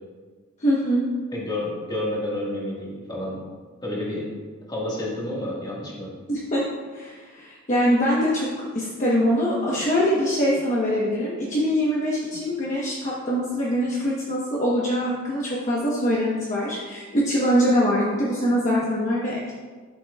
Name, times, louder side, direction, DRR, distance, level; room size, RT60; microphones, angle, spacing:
voice 1, 0.6-1.1 6.3-6.6 6.9-8.5 8.7-19.5, equal, 35° left, -6 dB, 1.1 m, -23 dB
voice 2, 1.3-3.4 3.8-4.3 4.7-6.1, left 1 dB, 20° left, -4 dB, 1.7 m, -29 dB
11.5 x 6.0 x 2.4 m, 1.4 s
head